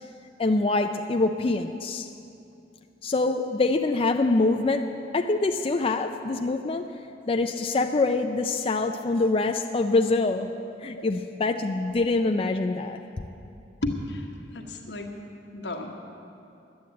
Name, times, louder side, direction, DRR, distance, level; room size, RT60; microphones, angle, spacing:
voice 1, 0.4-2.1 3.0-7.0 7.3-10.5 10.8-13.2, left 3 dB, 30° left, 5 dB, 0.4 m, -25 dB
voice 2, 13.8-14.2 14.5-15.1 15.5-15.9, left 2 dB, 70° left, 2 dB, 1.5 m, -32 dB
11.5 x 9.5 x 8.3 m, 2.7 s
head